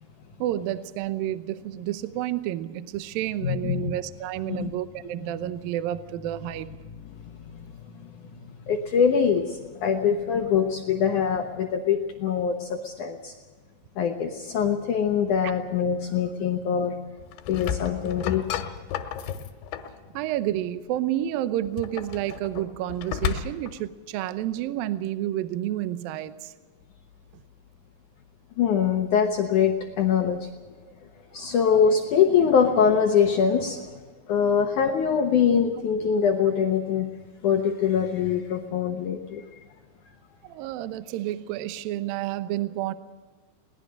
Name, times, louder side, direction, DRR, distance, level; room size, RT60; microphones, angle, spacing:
voice 1, 0.4-6.7 20.1-26.5 31.4-31.5 40.4-42.9, right 13 dB, 80° right, 12 dB, 2.2 m, -30 dB
voice 2, 3.4-3.9 4.4-4.7 8.7-13.3 14.0-17.0 17.5-18.6 28.6-30.5 31.3-34.0 34.3-37.1 37.4-39.4, left 7 dB, 70° left, 3 dB, 1.9 m, -23 dB
sound 1, 17.2-20.0 21.6-23.8, left 9 dB, 90° left, 3.5 m, -32 dB
22.0 x 19.0 x 6.5 m, 1.4 s
omnidirectional pair, 5.0 m